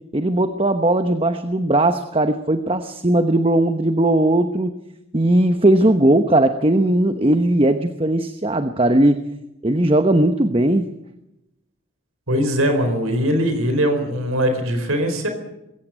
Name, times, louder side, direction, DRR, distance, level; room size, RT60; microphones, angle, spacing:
voice 1, 0.1-4.8 5.1-9.2 9.6-10.9, right 1 dB, 25° right, 9 dB, 0.9 m, -18 dB
voice 2, 12.3-15.3, equal, 90° right, 7 dB, 4.5 m, -21 dB
21.5 x 17.0 x 8.9 m, 0.89 s
head